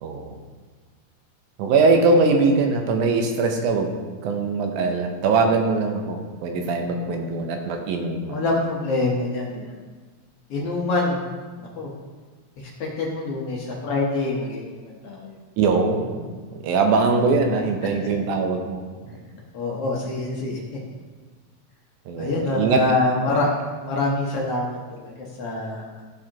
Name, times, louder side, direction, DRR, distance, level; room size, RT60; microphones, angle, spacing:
voice 1, 0.0-0.4 1.6-4.0 4.2-8.4 15.6-19.2 22.1-22.8, right 3 dB, 85° right, 4 dB, 2.2 m, -22 dB
voice 2, 6.8-7.2 8.3-9.8 10.5-11.3 11.6-11.9 12.6-15.4 18.0-18.1 19.5-20.6 22.2-23.5 23.8-25.9, left 2 dB, 65° left, -3 dB, 1.7 m, -26 dB
13.5 x 4.9 x 2.9 m, 1.4 s
omnidirectional pair, 3.5 m